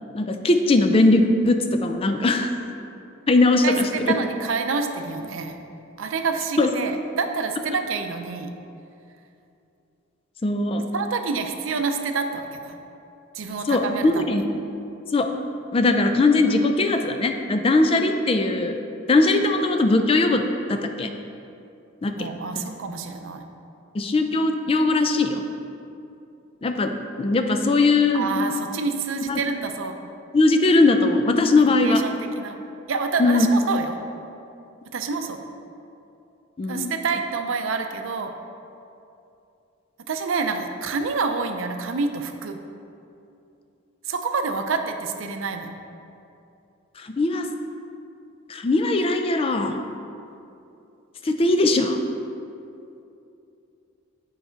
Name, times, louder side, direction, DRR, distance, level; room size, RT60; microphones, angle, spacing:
voice 1, 0.1-2.5 3.3-4.2 6.6-6.7 10.4-10.9 13.7-14.4 15.1-15.3 15.7-18.8 19.1-21.1 22.0-22.3 23.9-25.4 26.6-28.3 29.3-29.4 30.3-32.0 33.2-33.5 36.6-36.9 47.0-47.5 48.5-49.8 51.2-52.0, left 2 dB, 25° left, 6 dB, 0.4 m, -20 dB
voice 2, 3.6-5.6 6.0-8.5 10.9-12.8 13.3-14.3 22.2-23.5 28.1-29.9 31.6-32.6 32.9-34.0 34.9-35.4 36.7-38.3 40.1-42.6 44.1-45.7, right 4 dB, 70° right, 6 dB, 0.5 m, -27 dB
7.9 x 4.8 x 4.4 m, 2.7 s
head